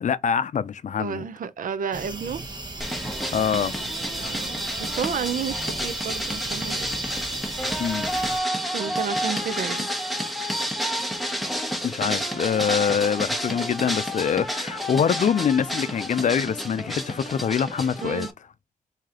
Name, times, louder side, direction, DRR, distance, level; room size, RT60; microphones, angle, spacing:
voice 1, 0.0-1.2 3.3-3.7 7.8-8.1 11.8-18.3, left 7 dB, 65° left, 0.4 m, -24 dB
voice 2, 1.0-2.4 4.2-7.3 8.6-9.9 18.0-18.3, right 7 dB, 85° right, 0.5 m, -31 dB
sound 1, 1.9-8.4, right 2 dB, 30° right, 0.8 m, -37 dB
sound 2, 2.8-18.3, equal, ahead, 0.8 m, -29 dB
3.3 x 2.8 x 3.6 m
cardioid pair, 80°, 14 cm